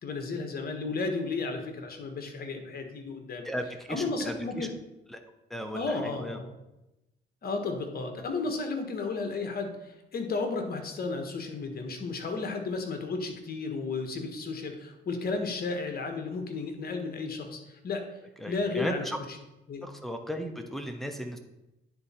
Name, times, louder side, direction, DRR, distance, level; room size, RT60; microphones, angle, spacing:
voice 1, 0.0-3.4 3.9-4.7 5.7-6.5 7.4-18.1 18.5-19.1 19.7-19.9, left 3 dB, 50° left, 5 dB, 1.4 m, -33 dB
voice 2, 3.4-4.7 5.1-5.2 5.5-6.4 18.4-19.2 19.8-21.4, equal, ahead, 5 dB, 1.0 m, -36 dB
9.6 x 4.0 x 4.4 m, 0.95 s
cardioid pair, 90°, 20 cm